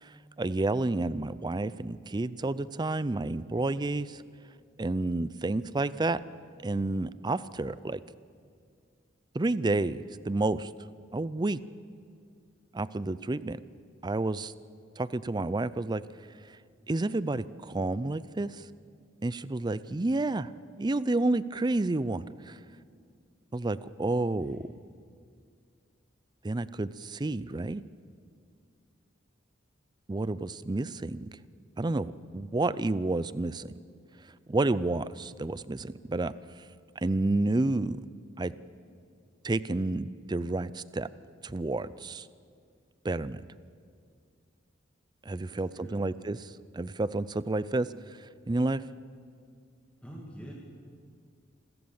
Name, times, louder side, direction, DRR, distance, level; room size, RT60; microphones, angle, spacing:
voice 1, 0.0-4.2 4.8-6.2 6.6-8.0 9.3-10.7 11.1-11.6 12.7-13.6 14.0-14.5 15.0-16.0 16.9-18.7 19.2-20.5 20.8-22.6 23.5-24.7 26.4-27.8 30.1-31.3 31.8-33.7 34.5-36.3 37.0-38.0 38.4-38.5 39.4-41.1 41.4-42.3 43.0-43.4 45.3-48.8, right 2 dB, 20° right, 17 dB, 0.5 m, -30 dB
voice 2, 45.2-46.1 50.0-50.5, equal, 5° left, -3 dB, 2.3 m, -47 dB
28.0 x 14.0 x 7.3 m, 2.2 s
head